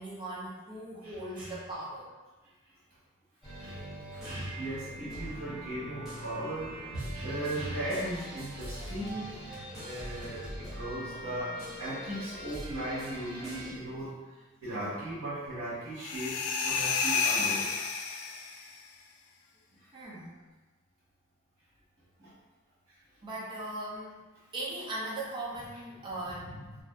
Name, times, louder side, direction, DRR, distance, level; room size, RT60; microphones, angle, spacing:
voice 1, 0.0-2.1 19.9-20.3 23.2-24.2 24.5-26.5, right 1 dB, 20° right, -5 dB, 0.4 m, -39 dB
voice 2, 1.0-1.6 3.6-3.8 4.1-14.1 14.6-16.3 16.6-17.6 22.2-22.3 26.4-26.5, right 1 dB, 80° right, -11 dB, 1.0 m, -37 dB
sound 1, 3.4-13.7, equal, ahead, 0.8 m, -42 dB
sound 2, 16.0-18.7, left 5 dB, 85° left, 0.3 m, -30 dB
2.5 x 2.3 x 2.2 m, 1.2 s
head